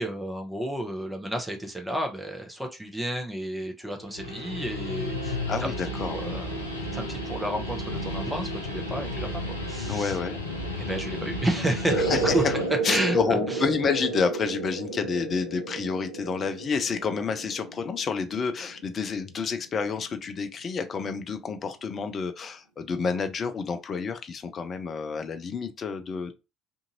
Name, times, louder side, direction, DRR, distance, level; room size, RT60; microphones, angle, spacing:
voice 1, 0.0-5.7 6.0-9.3 9.7-10.2 10.8-12.4 12.9-13.6, right 1 dB, 5° right, 0.8 m, -31 dB
Guitar, 4.0-12.7, left 1 dB, 90° left, 0.5 m, -33 dB
voice 2, 5.5-6.1 9.9-10.4 11.9-12.6 12.8-26.3, left 5 dB, 40° left, 0.5 m, -29 dB
sound 1, 11.9-19.0, right 3 dB, 80° right, 0.5 m, -31 dB
2.6 x 2.5 x 2.8 m
figure-of-eight pair, 55°, 0 cm